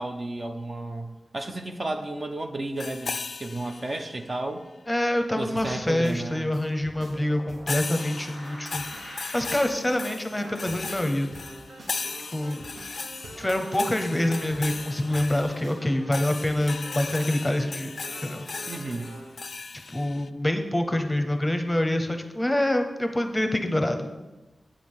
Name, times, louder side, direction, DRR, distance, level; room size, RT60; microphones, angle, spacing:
voice 1, 0.0-4.6 5.4-6.4 18.7-19.2, right 2 dB, 35° right, 5 dB, 0.6 m, -33 dB
sound 1, 2.8-4.4 7.7-20.3, left 4 dB, 60° left, 0.3 m, -37 dB
voice 2, 4.9-11.3 12.3-12.7 13.4-17.9 18.2-18.5 19.9-24.1, left 1 dB, 15° left, 6 dB, 0.8 m, -26 dB
sound 2, 5.6-19.4, right 1 dB, 90° right, 1.4 m, -45 dB
8.2 x 4.9 x 5.5 m, 1.1 s
wide cardioid pair, 100°, 0 cm